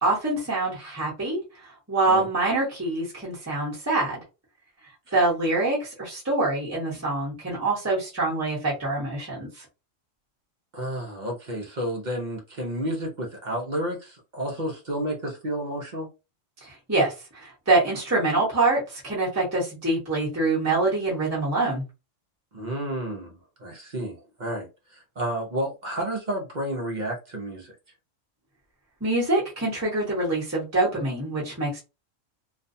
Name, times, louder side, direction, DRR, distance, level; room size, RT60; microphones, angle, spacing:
voice 1, 0.0-4.2 5.1-9.6 16.6-21.8 29.0-31.8, right 2 dB, 15° right, 0.9 m, -25 dB
voice 2, 10.7-16.1 22.5-27.7, right 1 dB, 45° right, 0.6 m, -31 dB
2.5 x 2.2 x 2.6 m
omnidirectional pair, 1.3 m